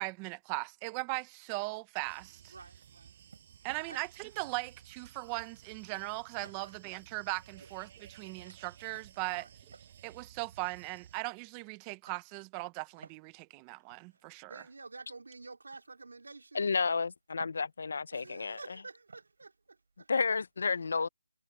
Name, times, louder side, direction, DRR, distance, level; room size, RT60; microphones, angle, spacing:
voice 1, 0.0-2.5 3.6-9.5 10.0-14.6, right 26 dB, 15° right, 0.9 m, -39 dB
sound 1, 1.7-3.0 3.3-4.4 4.8-5.3 5.6-6.8 7.4-8.2 8.4-8.6 8.9-9.2 9.6-11.2 11.7-12.3 12.8-15.5 15.7-15.8 16.5-18.0 18.3-20.5, right 4 dB, 65° right, 6.3 m, -59 dB
sound 2, 2.0-11.2, right 9 dB, 35° right, 5.9 m, -56 dB
voice 2, 2.5-3.1 3.9-4.0 6.5-6.7 7.6-7.7 9.3-9.5 14.5-16.7 18.1-20.1, right 3 dB, 85° right, 3.0 m, -50 dB
voice 3, 16.5-18.6 20.1-21.1, left 4 dB, 60° left, 0.6 m, -31 dB
hypercardioid pair, 165°, 0 cm